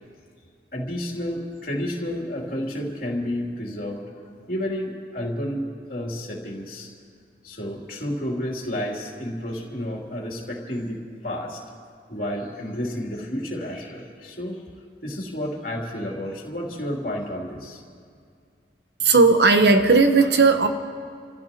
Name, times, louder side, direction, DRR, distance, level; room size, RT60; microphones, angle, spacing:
voice 1, 0.7-5.6 5.9-6.9 7.4-11.6 12.1-14.6 15.0-17.8, left 1 dB, 50° left, -2 dB, 3.2 m, -31 dB
voice 2, 19.0-20.7, right 3 dB, 70° right, 7 dB, 1.1 m, -16 dB
30.0 x 15.5 x 3.0 m, 2.3 s
head